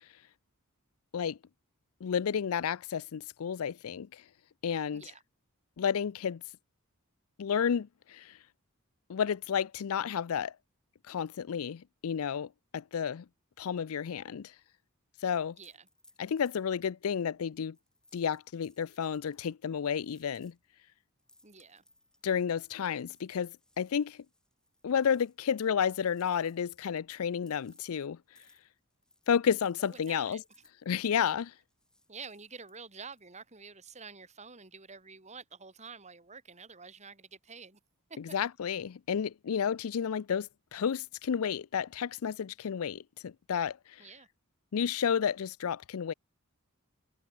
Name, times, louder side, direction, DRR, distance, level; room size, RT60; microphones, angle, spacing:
voice 1, 2.0-4.2 4.6-5.0 5.8-6.4 7.4-8.4 9.1-10.5 11.1-13.3 13.6-14.5 15.2-15.6 16.2-17.8 18.1-20.5 22.2-24.2 24.8-28.2 29.3-30.4 30.9-31.5 38.3-44.0 44.7-46.1, left 7 dB, 70° left, 0.4 m, -31 dB
voice 2, 4.9-5.2 15.6-15.9 21.4-21.8 29.8-30.4 30.9-31.2 32.1-37.8 38.1-38.2 44.0-44.3, right 5 dB, 30° right, 3.9 m, -49 dB
sound 1, 15.3-16.7 17.1-17.2 17.6-20.6 21.2-22.4 22.7-27.0 27.3-27.9 28.4-28.7 28.9-31.3 31.7-32.8 33.1-33.3, left 1 dB, 5° left, 5.8 m, -65 dB
head